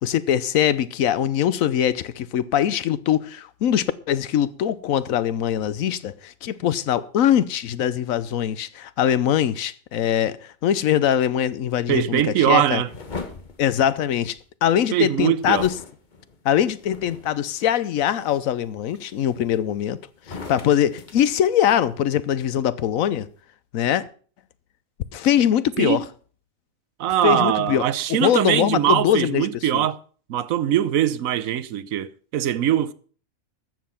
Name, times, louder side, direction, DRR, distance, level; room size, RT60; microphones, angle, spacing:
voice 1, 0.0-12.8 13.6-15.8 16.4-20.0 20.3-23.3 23.7-24.1 25.1-26.0 27.2-29.5 29.7-29.9, left 10 dB, 85° left, 1.2 m, -22 dB
voice 2, 11.9-12.9 14.9-15.7 25.8-26.0 27.0-30.0 30.3-32.9, right 11 dB, 85° right, 1.1 m, -22 dB
sound 1, 12.9-14.5 15.4-17.5 18.0-18.4 18.9-19.7 20.2-22.1, left 4 dB, 35° left, 1.3 m, -39 dB
13.5 x 7.5 x 5.8 m
omnidirectional pair, 1.4 m